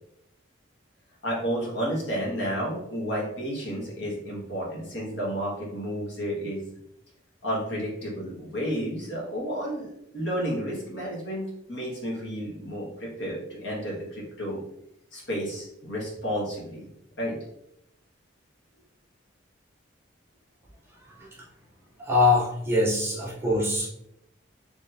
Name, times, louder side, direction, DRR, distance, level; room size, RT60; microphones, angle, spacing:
voice 1, 1.2-6.7 7.4-14.6 15.1-16.9 17.2-17.4, equal, 65° left, -4 dB, 1.5 m, -31 dB
voice 2, 21.2-21.5 22.0-23.9, left 2 dB, 10° right, -3 dB, 0.6 m, -24 dB
4.2 x 3.4 x 2.6 m, 0.78 s
head